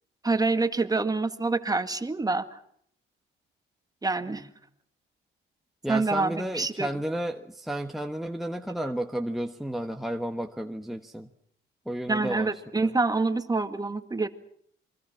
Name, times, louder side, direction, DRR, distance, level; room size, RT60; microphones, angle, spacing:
voice 1, 0.2-2.6 4.0-4.5 5.9-6.9 12.1-14.3, right 3 dB, 20° right, 9 dB, 1.8 m, -26 dB
voice 2, 5.8-11.3 11.9-12.9, right 1 dB, ahead, 4 dB, 1.2 m, -32 dB
28.0 x 23.0 x 6.0 m, 0.65 s
cardioid pair, 90°, 20 cm